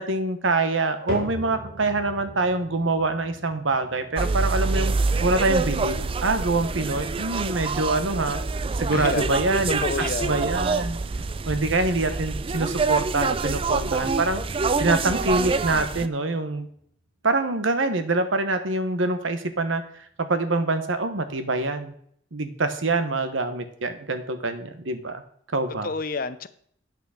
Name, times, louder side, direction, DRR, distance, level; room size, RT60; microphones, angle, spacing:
voice 1, 0.0-4.9 5.2-8.4 8.8-9.8 10.2-11.0 11.5-14.4 14.8-16.7 17.2-19.8 20.2-21.9 22.3-25.2 25.5-25.9, right 2 dB, 85° right, 9 dB, 1.2 m, -25 dB
sound 1, 1.1-17.4 17.7-18.2 18.8-18.9 19.7-19.8, equal, 70° right, 3.3 m, -43 dB
sound 2, 4.2-16.1, right 4 dB, 30° right, 0.4 m, -26 dB
voice 2, 8.9-9.3 9.8-10.5 25.8-26.5, left 4 dB, 50° left, 13 dB, 0.6 m, -29 dB
9.0 x 6.0 x 6.4 m, 0.64 s
head